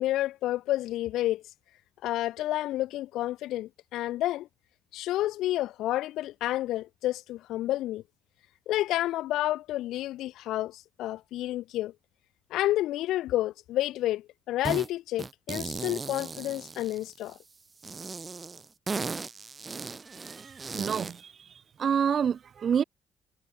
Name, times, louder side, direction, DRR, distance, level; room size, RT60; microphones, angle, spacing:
voice 1, 0.0-1.4 2.0-4.5 4.9-8.0 8.7-11.9 12.5-17.4, left 15 dB, 90° left, 3.8 m, -30 dB
sound 1, 14.6-14.9 15.2-17.3 17.8-21.2, right 4 dB, 30° right, 1.4 m, -37 dB
voice 2, 20.4-21.3 21.8-22.8, right 7 dB, 55° right, 2.4 m, -27 dB
cardioid pair, 90°, 0 cm